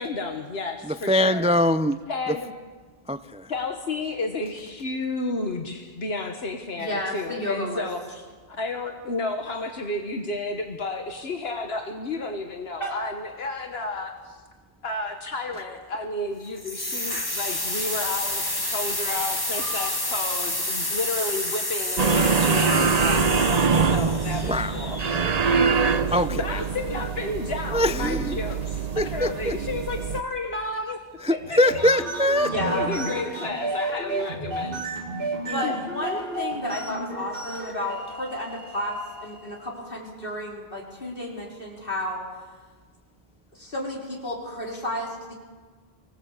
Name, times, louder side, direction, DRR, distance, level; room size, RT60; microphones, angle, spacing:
voice 1, 0.0-1.5 2.1-2.5 3.5-14.4 14.8-25.0 26.1-31.0 31.3-31.9 32.6-34.8 35.5-35.8, left 3 dB, 80° left, 4 dB, 1.7 m, -32 dB
voice 2, 1.1-2.0 2.3-2.4 3.1-3.5 24.4-24.7 26.1-26.4 27.7-28.3 29.0-29.5 31.2-32.5, left 1 dB, 10° right, 13 dB, 0.4 m, -22 dB
voice 3, 6.8-7.9 12.8-13.0 32.5-33.2 35.5-42.3 43.5-45.3, left 1 dB, 60° left, -2 dB, 4.5 m, -32 dB
sound 1, 16.6-25.4, left 1 dB, 20° left, 2.0 m, -29 dB
sound 2, 22.0-30.2, right 5 dB, 40° right, 0.9 m, -24 dB
sound 3, 31.4-39.7, right 2 dB, 60° right, 2.4 m, -32 dB
24.5 x 16.5 x 8.3 m, 1.5 s
omnidirectional pair, 1.0 m